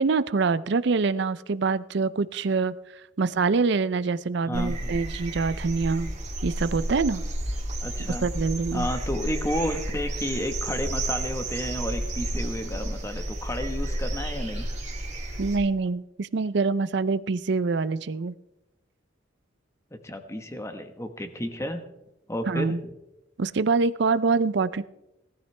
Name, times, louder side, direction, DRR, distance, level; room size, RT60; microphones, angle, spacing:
voice 1, 0.0-2.8 3.2-6.1 6.4-7.2 8.2-8.9 15.4-18.3 22.5-22.8 23.4-24.8, right 4 dB, 60° right, 15 dB, 0.5 m, -25 dB
voice 2, 4.5-5.0 7.8-8.3 8.7-14.7 19.9-21.8 22.3-22.8, equal, 15° left, 7 dB, 1.2 m, -32 dB
sound 1, 4.5-15.6, right 1 dB, 35° right, 2.3 m, -31 dB
18.5 x 13.0 x 3.3 m, 0.93 s
head